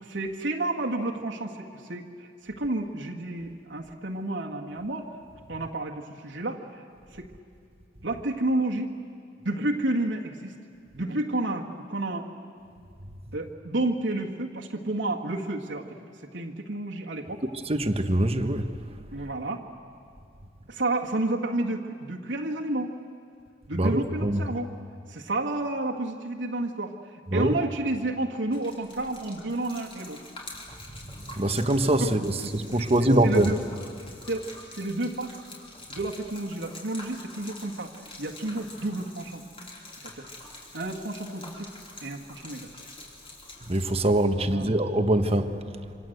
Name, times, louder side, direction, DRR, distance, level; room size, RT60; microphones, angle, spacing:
voice 1, 0.0-5.1 5.5-6.6 7.1-7.3 8.0-8.9 9.4-10.5 10.9-12.3 13.3-15.9 16.2-17.4 19.1-19.6 20.7-22.9 23.7-24.7 25.1-30.2 32.0-32.1 32.6-33.6 34.3-35.4 35.9-37.9 38.2-39.4 40.0-40.3 40.7-41.7 42.0-42.7 44.4-44.7, right 2 dB, 85° right, 0 dB, 1.9 m, -31 dB
voice 2, 17.7-18.7 23.8-24.4 27.3-27.5 31.4-33.5 43.7-45.5, right 1 dB, 35° right, 8 dB, 1.3 m, -23 dB
Gurgling / Liquid, 28.5-43.9, left 2 dB, 30° left, 4.5 m, -46 dB
27.0 x 25.5 x 8.0 m, 2.4 s
head